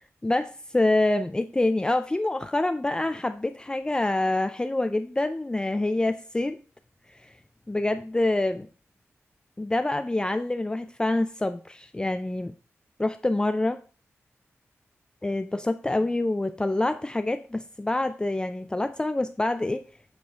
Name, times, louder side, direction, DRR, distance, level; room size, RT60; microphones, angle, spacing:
voice 1, 0.2-6.6 7.2-7.3 7.7-8.7 9.6-12.5 13.0-13.8 15.2-19.8, left 2 dB, 15° left, 10 dB, 0.4 m, -26 dB
8.3 x 4.4 x 4.5 m, 0.37 s
wide cardioid pair, 90°, 5 cm